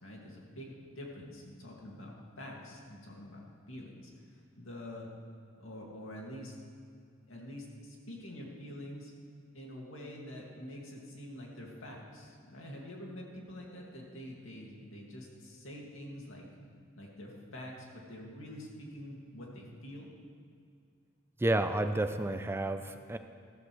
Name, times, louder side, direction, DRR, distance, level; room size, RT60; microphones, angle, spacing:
voice 1, 0.0-5.1 5.5-6.5 7.3-9.1 9.5-16.5 16.9-20.1, left 1 dB, 80° left, -2 dB, 2.3 m, -46 dB
voice 2, 21.4-23.2, right 1 dB, 10° right, 8 dB, 0.4 m, -30 dB
14.0 x 14.0 x 3.3 m, 2.3 s
head